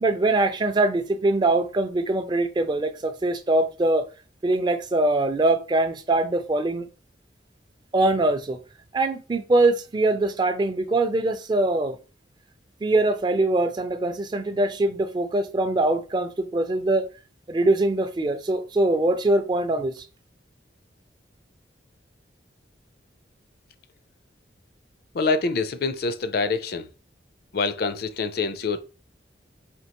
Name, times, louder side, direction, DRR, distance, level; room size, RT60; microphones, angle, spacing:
voice 1, 0.0-4.0 4.4-6.9 7.9-8.6 8.9-12.0 12.8-17.0 17.5-19.9, right 2 dB, 25° right, 0.4 m, -23 dB
voice 2, 25.1-26.9 27.5-28.8, left 4 dB, 55° left, 0.4 m, -25 dB
4.4 x 2.8 x 2.9 m
head